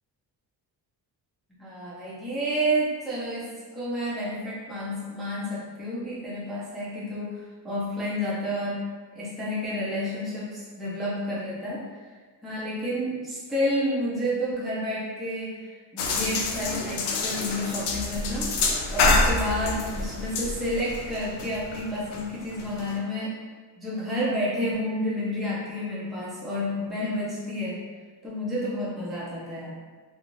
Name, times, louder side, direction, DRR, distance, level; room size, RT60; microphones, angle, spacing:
voice 1, 1.6-3.5 3.7-8.8 9.2-12.1 12.4-18.5 18.9-23.4 23.8-27.8 28.2-29.7, equal, ahead, -9 dB, 0.5 m, -30 dB
sound 1, 16.0-23.0, left 3 dB, 70° left, 0.5 m, -27 dB
2.6 x 2.5 x 3.0 m, 1.5 s
cardioid pair, 155°, 42 cm